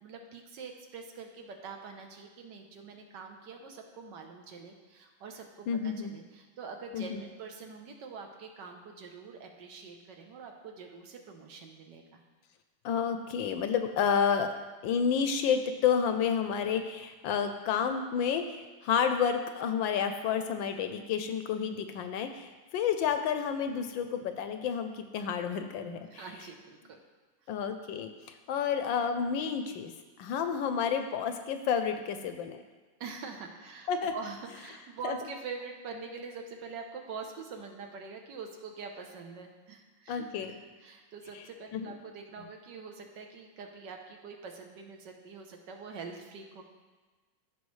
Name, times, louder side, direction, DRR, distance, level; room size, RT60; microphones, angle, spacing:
voice 1, 0.0-12.2 26.1-27.0 27.4-27.5 33.0-46.6, right 5 dB, 65° right, 3 dB, 1.4 m, -44 dB
voice 2, 5.7-6.1 6.9-7.2 12.8-14.5 14.8-26.2 27.5-28.1 28.5-29.9 30.2-32.6 33.9-34.1 35.0-35.2 40.1-40.5 41.3-41.4 41.7-41.9, left 7 dB, 75° left, 7 dB, 1.2 m, -30 dB
15.0 x 5.2 x 3.2 m, 1.3 s
omnidirectional pair, 2.3 m